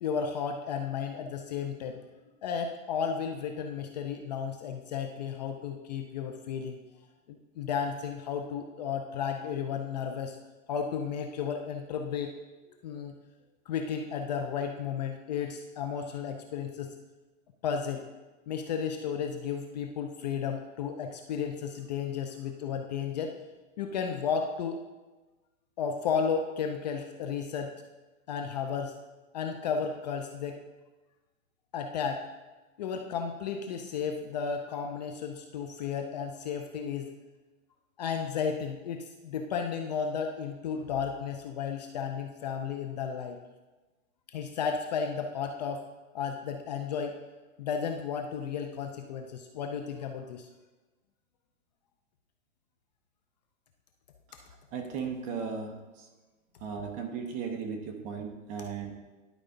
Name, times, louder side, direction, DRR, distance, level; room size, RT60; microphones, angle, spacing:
voice 1, 0.0-2.0 2.4-6.8 7.3-10.4 10.7-12.3 12.8-13.2 13.7-16.9 17.6-18.0 18.5-23.3 23.8-24.8 25.8-27.7 28.3-28.9 29.3-30.6 31.7-32.2 32.8-37.1 38.0-43.4 44.3-45.8 46.1-47.2 47.6-50.5, left 6 dB, 35° left, 5 dB, 0.4 m, -33 dB
voice 2, 54.7-55.7 56.0-56.1 56.6-58.9, right 6 dB, 20° right, 4 dB, 0.7 m, -36 dB
11.0 x 4.7 x 3.8 m, 1.2 s
hypercardioid pair, 150°, 39 cm